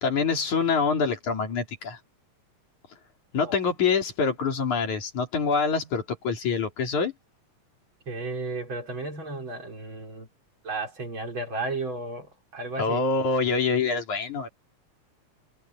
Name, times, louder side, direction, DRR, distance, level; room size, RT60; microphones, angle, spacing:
voice 1, 0.0-2.0 3.3-7.1 12.8-14.5, left 5 dB, 75° left, 4.9 m, -25 dB
voice 2, 8.1-10.3 10.6-13.0, right 2 dB, 40° right, 4.9 m, -33 dB
omnidirectional pair, 3.4 m